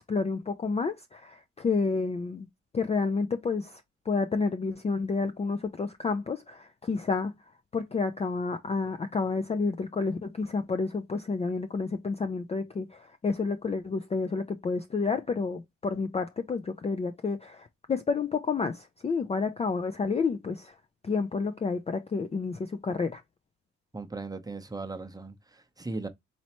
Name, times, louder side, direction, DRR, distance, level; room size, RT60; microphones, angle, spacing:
voice 1, 0.1-2.5 2.7-3.8 4.1-7.3 7.7-20.8 21.0-23.2, left 4 dB, 20° left, 0.4 m, -30 dB
voice 2, 23.9-26.1, right 3 dB, 15° right, 0.7 m, -38 dB
4.2 x 3.1 x 2.9 m
cardioid pair, 90°, 30 cm